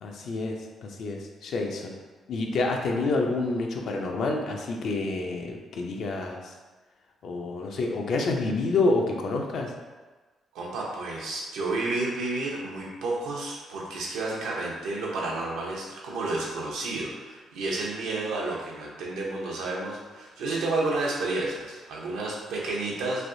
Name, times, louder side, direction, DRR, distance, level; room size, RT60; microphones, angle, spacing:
voice 1, 0.0-1.9 2.3-6.5 7.2-9.7, left 3 dB, 65° left, 1 dB, 0.4 m, -28 dB
voice 2, 10.5-23.3, right 2 dB, 85° right, -3 dB, 0.7 m, -31 dB
3.3 x 2.7 x 2.6 m, 1.3 s
cardioid pair, 90°, 0 cm